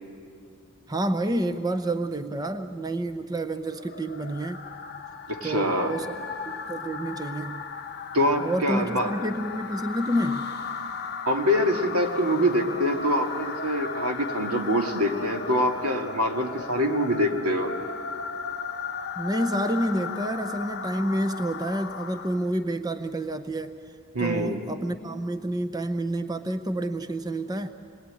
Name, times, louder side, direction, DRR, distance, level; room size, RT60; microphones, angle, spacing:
voice 1, 0.9-4.7 5.4-6.2 6.5-7.7 8.4-10.5 19.2-23.8 24.2-27.7, right 1 dB, 15° right, 9 dB, 0.7 m, -29 dB
sound 1, 3.6-22.6, left 5 dB, 45° left, 1.0 m, -36 dB
voice 2, 5.3-5.9 8.1-9.1 11.3-17.7 24.1-24.7, equal, 90° right, 3 dB, 2.2 m, -25 dB
27.5 x 21.5 x 9.0 m, 2.3 s
head